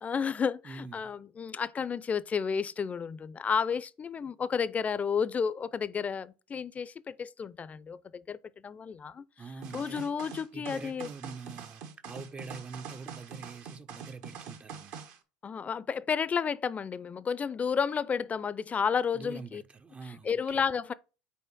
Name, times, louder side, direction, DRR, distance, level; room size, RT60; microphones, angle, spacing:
voice 1, 0.0-8.4 8.6-9.2 9.7-11.1 15.4-19.6 20.2-20.9, left 6 dB, 30° left, 0.5 m, -31 dB
voice 2, 0.6-1.1 9.4-10.1 10.5-14.9 19.1-20.6, right 4 dB, 25° right, 0.5 m, -45 dB
sound 1, 9.6-15.2, right 7 dB, 65° right, 1.2 m, -44 dB
5.7 x 4.5 x 6.0 m
hypercardioid pair, 90°, 5 cm